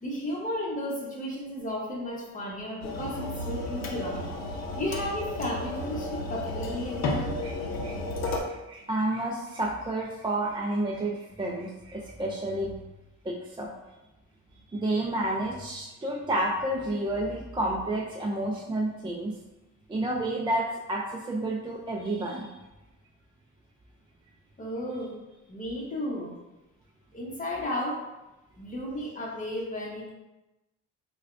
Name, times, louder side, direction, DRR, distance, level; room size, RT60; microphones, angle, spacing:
voice 1, 0.0-4.3 4.8-7.3 24.6-25.2 25.5-26.3 27.1-28.0 28.6-30.1, left 1 dB, 25° left, -3 dB, 1.0 m, -33 dB
sound 1, 2.8-8.4, left 2 dB, 60° left, 0.7 m, -33 dB
voice 2, 8.2-12.7 13.2-13.7 14.7-19.4 19.9-22.6, right 1 dB, 15° right, -2 dB, 0.4 m, -30 dB
4.3 x 2.3 x 2.5 m, 1.0 s
cardioid pair, 90°, 30 cm